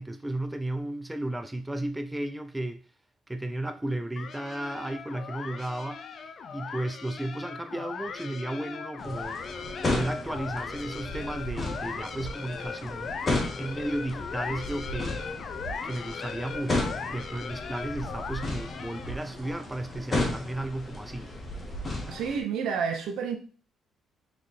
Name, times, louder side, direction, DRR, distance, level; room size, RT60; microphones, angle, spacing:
voice 1, 0.0-2.8 3.3-13.2 13.6-15.2 15.8-21.3, right 1 dB, 10° right, 0.4 m, -34 dB
sound 1, 4.2-19.3, left 5 dB, 55° left, 0.5 m, -39 dB
sound 2, 9.0-22.4, left 2 dB, 30° left, 1.2 m, -34 dB
voice 2, 22.1-23.4, right 6 dB, 80° right, 0.8 m, -29 dB
3.4 x 3.1 x 4.2 m
cardioid pair, 90°, 0 cm